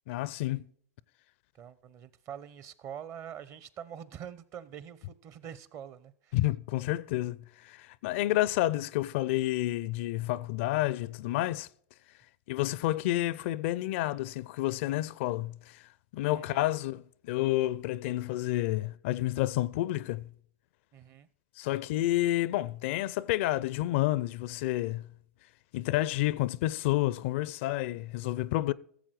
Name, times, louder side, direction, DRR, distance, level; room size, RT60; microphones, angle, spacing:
voice 1, 0.1-0.7 6.3-11.7 12.5-15.8 16.1-20.3 21.6-25.0 25.7-28.7, left 16 dB, 55° left, 0.4 m, -30 dB
voice 2, 1.5-6.4 16.3-16.6 20.9-21.3, right 9 dB, 35° right, 0.8 m, -45 dB
15.5 x 7.4 x 4.7 m
hypercardioid pair, 100°, 8 cm